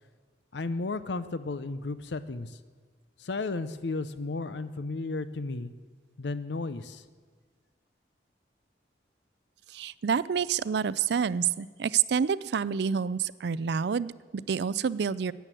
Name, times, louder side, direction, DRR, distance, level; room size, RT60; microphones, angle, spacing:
voice 1, 0.5-2.6 3.2-5.7 6.2-7.0, left 3 dB, 75° left, 13 dB, 0.7 m, -33 dB
voice 2, 9.7-15.3, right 7 dB, 65° right, 19 dB, 0.4 m, -28 dB
13.0 x 9.2 x 7.6 m, 1.5 s
head